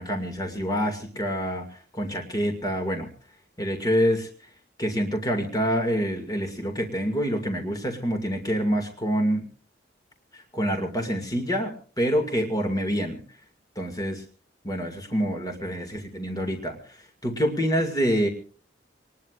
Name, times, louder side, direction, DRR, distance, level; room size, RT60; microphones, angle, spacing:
voice 1, 0.0-3.1 3.6-4.3 4.8-9.4 10.3-13.2 13.8-14.2 14.6-18.3, equal, 20° left, 4 dB, 2.2 m, -27 dB
25.5 x 19.5 x 2.5 m, 0.41 s
head